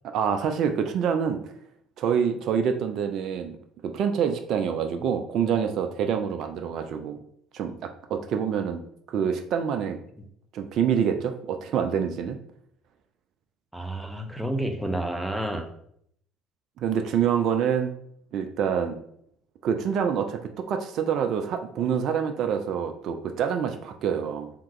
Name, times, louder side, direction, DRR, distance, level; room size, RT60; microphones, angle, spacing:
voice 1, 0.1-1.5 2.0-3.5 3.8-7.2 7.5-8.8 9.1-10.0 10.5-12.4 16.8-17.9 18.3-19.0 19.6-24.5, right 7 dB, 55° right, 6 dB, 0.4 m, -26 dB
voice 2, 13.7-15.7, right 1 dB, 5° right, 4 dB, 0.8 m, -30 dB
3.5 x 2.9 x 4.7 m, 0.69 s
hypercardioid pair, 60°, 0 cm